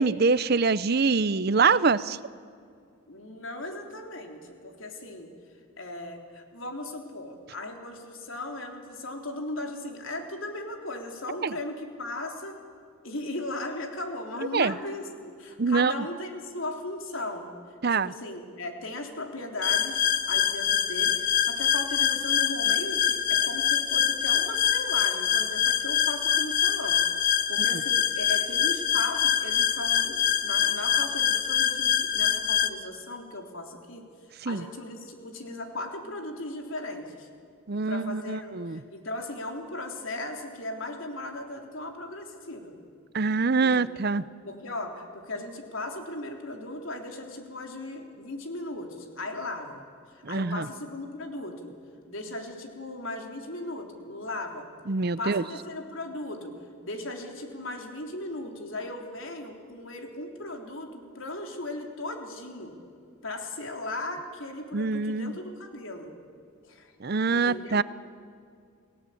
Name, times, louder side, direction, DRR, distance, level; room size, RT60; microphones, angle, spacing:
voice 1, 0.0-2.2 11.4-11.5 14.5-14.7 15.6-15.9 17.8-18.1 34.4-34.6 37.7-38.8 43.1-44.2 50.2-50.7 54.9-55.4 64.7-65.4 67.0-67.8, right 4 dB, 50° right, 17 dB, 0.6 m, -24 dB
voice 2, 3.1-5.3 5.8-12.6 13.0-17.5 17.9-34.0 34.4-37.3 37.8-42.7 43.6-43.7 44.0-44.1 44.4-49.8 50.1-51.7 52.1-54.7 55.2-56.5 56.8-62.7 63.2-66.1 66.6-66.9 67.3-67.8, left 2 dB, 70° left, 3 dB, 3.5 m, -37 dB
sound 1, 19.6-32.7, left 9 dB, 40° left, 1.0 m, -25 dB
30.0 x 18.0 x 8.6 m, 2.4 s
head